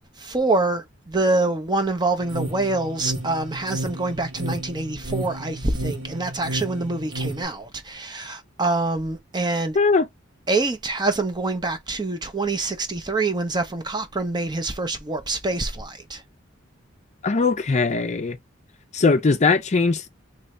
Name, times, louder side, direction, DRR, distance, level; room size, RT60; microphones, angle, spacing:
voice 1, 0.2-9.8 10.5-16.2, right 2 dB, 20° right, 0.6 m, -25 dB
sound 1, 2.2-7.4, right 1 dB, 65° right, 1.6 m, -32 dB
voice 2, 17.2-18.4 18.9-20.1, left 4 dB, 35° left, 0.5 m, -20 dB
3.0 x 2.7 x 3.2 m
head